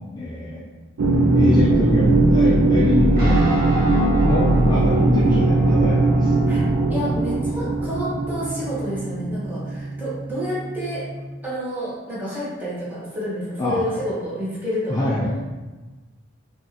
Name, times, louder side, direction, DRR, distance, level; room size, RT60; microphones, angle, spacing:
voice 1, 0.1-0.6 1.3-3.7 4.2-6.3 13.6-13.8 14.9-15.3, left 1 dB, 20° left, -6 dB, 0.4 m, -24 dB
sound 1, 1.0-9.5, right 2 dB, 75° right, 0.5 m, -19 dB
Guitar, 3.2-11.2, right 2 dB, 45° right, 0.8 m, -33 dB
voice 2, 5.2-5.5 6.5-6.6 6.9-11.1 11.4-15.1, equal, 10° right, -8 dB, 1.0 m, -29 dB
4.7 x 2.5 x 2.8 m, 1.2 s
head